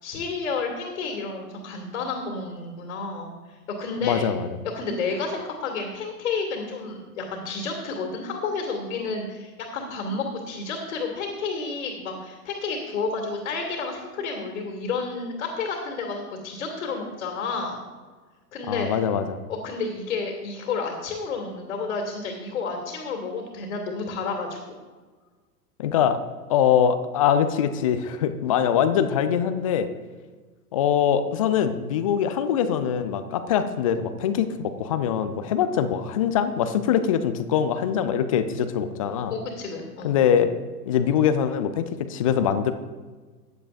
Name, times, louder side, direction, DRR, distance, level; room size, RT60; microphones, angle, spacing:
voice 1, 0.0-3.3 3.7-4.2 4.7-17.8 18.5-18.9 19.5-24.6 39.3-40.2, left 4 dB, 60° left, 1 dB, 2.3 m, -31 dB
voice 2, 4.0-4.6 18.7-19.4 25.8-26.2 26.5-29.9 30.7-39.3 40.0-40.5 40.9-42.7, left 8 dB, 25° left, 10 dB, 0.3 m, -23 dB
15.5 x 9.8 x 2.5 m, 1.4 s
figure-of-eight pair, 100°, 48 cm